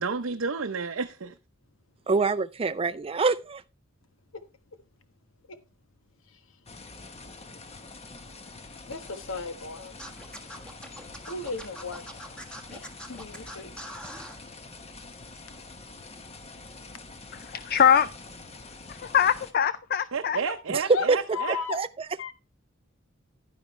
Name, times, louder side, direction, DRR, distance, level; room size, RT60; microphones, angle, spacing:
voice 1, 0.0-1.3 20.1-21.6, right 5 dB, 70° right, 0.7 m, -31 dB
voice 2, 2.1-3.6 20.7-20.8 21.1-21.2 21.7-21.9, right 4 dB, 25° right, 0.4 m, -25 dB
sound 1, 6.7-19.5, left 3 dB, 30° left, 1.2 m, -46 dB
voice 3, 8.9-9.9 11.3-12.4 12.7-13.8 20.9-21.0 21.3-21.8 22.2-22.3, left 4 dB, 70° left, 1.3 m, -35 dB
Scratching (performance technique), 10.0-14.4, equal, 5° left, 1.4 m, -42 dB
voice 4, 17.3-18.1 18.9-20.4, left 8 dB, 45° left, 0.4 m, -23 dB
11.0 x 9.9 x 3.2 m
head